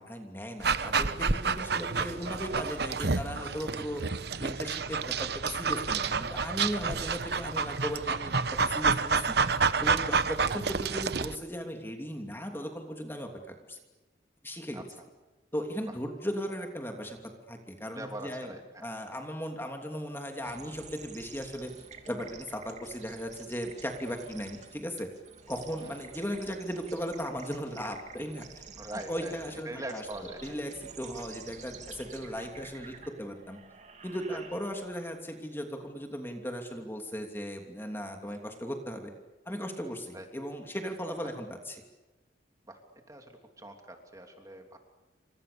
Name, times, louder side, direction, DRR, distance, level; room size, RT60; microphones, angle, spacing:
voice 1, 0.0-4.0 4.4-9.4 9.8-13.8 14.4-14.9 15.5-17.2 17.5-18.6 18.8-21.7 22.1-25.1 25.5-28.6 29.1-30.0 30.4-33.6 34.0-39.1 39.4-41.8, equal, 10° left, 3 dB, 2.9 m, -37 dB
Dog, 0.6-11.4, right 5 dB, 60° right, 1.1 m, -29 dB
voice 2, 17.9-18.8 25.8-25.9 28.8-30.6 34.3-34.4 38.3-38.4 40.1-40.3 42.7-42.8 43.1-44.8, right 1 dB, 20° right, 4 dB, 3.1 m, -42 dB
sound 1, 20.4-35.0, right 5 dB, 40° right, 3.2 m, -50 dB
29.0 x 27.0 x 7.0 m, 1.1 s
head